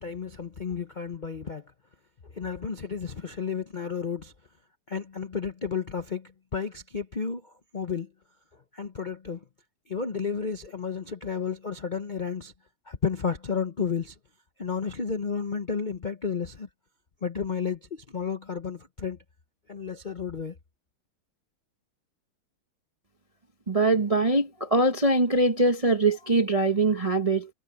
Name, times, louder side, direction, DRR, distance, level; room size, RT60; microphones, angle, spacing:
voice 1, 0.0-1.7 2.3-4.3 4.9-8.1 8.7-9.4 9.9-12.5 12.9-14.2 14.6-16.7 17.2-19.2 19.7-20.6, left 6 dB, 45° left, 0.6 m, -32 dB
voice 2, 23.7-27.5, right 2 dB, 30° right, 0.6 m, -23 dB
omnidirectional pair, 2.3 m